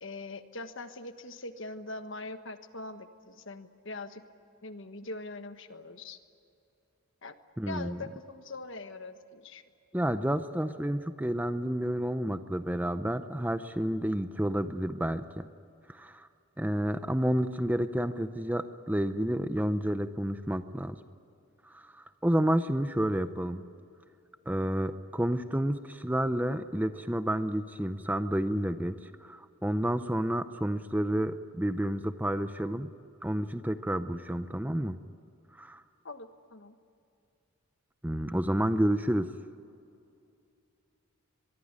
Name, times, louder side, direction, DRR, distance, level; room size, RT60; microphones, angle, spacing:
voice 1, 0.0-4.2 4.6-6.2 7.2-7.3 7.7-9.6 36.0-36.7, left 2 dB, 55° left, 9 dB, 1.5 m, -42 dB
voice 2, 7.6-8.0 9.9-15.5 15.9-16.3 16.6-21.0 21.6-23.6 24.5-32.9 33.2-35.0 35.6-35.8 38.0-39.3, right 1 dB, 10° right, 10 dB, 0.6 m, -30 dB
23.5 x 23.0 x 9.8 m, 2.6 s
head